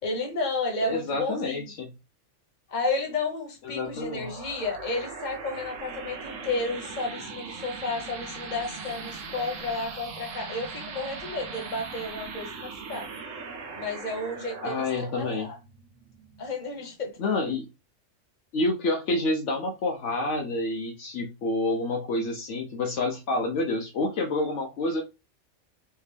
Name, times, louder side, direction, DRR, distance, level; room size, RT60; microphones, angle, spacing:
voice 1, 0.0-1.7 2.7-13.1 13.7-15.6 16.4-17.4, left 3 dB, 40° left, 1.1 m, -32 dB
voice 2, 0.8-1.9 3.6-4.3 14.6-15.5 17.2-17.7 18.5-25.0, left 2 dB, 75° left, 0.9 m, -28 dB
sound 1, 3.8-16.9, right 4 dB, 90° right, 1.1 m, -40 dB
3.3 x 2.7 x 3.3 m
omnidirectional pair, 1.3 m